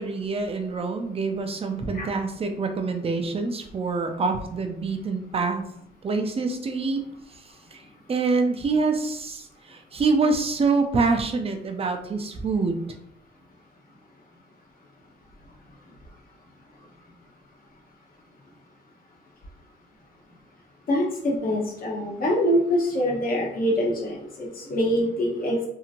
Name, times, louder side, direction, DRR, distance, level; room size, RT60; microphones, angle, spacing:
voice 1, 0.0-5.6 6.0-7.0 7.3-7.4 7.7-12.8, right 4 dB, 30° right, 5 dB, 0.5 m, -26 dB
voice 2, 20.9-25.6, equal, 45° left, -2 dB, 1.1 m, -24 dB
2.9 x 2.7 x 2.5 m, 0.74 s
cardioid pair, 90°, 20 cm